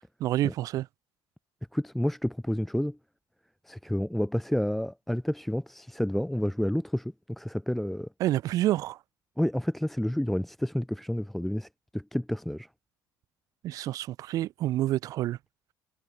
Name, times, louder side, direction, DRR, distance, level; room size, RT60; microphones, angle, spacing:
voice 1, 0.2-0.9 8.2-9.0 13.6-15.4, right 14 dB, 50° right, 0.5 m, -28 dB
voice 2, 1.7-3.0 3.7-8.1 9.4-11.7 11.9-12.7, equal, ahead, 0.6 m, -29 dB
cardioid pair, 135°, 7 cm